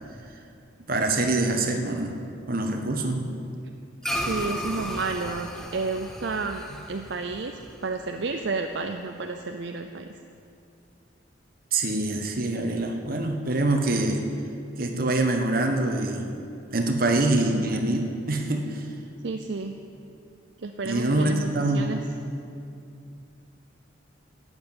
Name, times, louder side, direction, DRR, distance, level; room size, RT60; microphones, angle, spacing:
voice 1, 0.9-2.2 2.5-3.3 11.7-14.2 14.8-16.3 16.7-18.9 20.8-21.8, right 2 dB, 50° right, 4 dB, 1.3 m, -25 dB
sound 1, 4.0-8.7, equal, 5° left, 0.9 m, -35 dB
voice 2, 4.1-10.1 19.2-19.8 20.6-22.0, right 3 dB, 65° right, 5 dB, 0.6 m, -31 dB
11.5 x 8.1 x 9.0 m, 2.5 s
head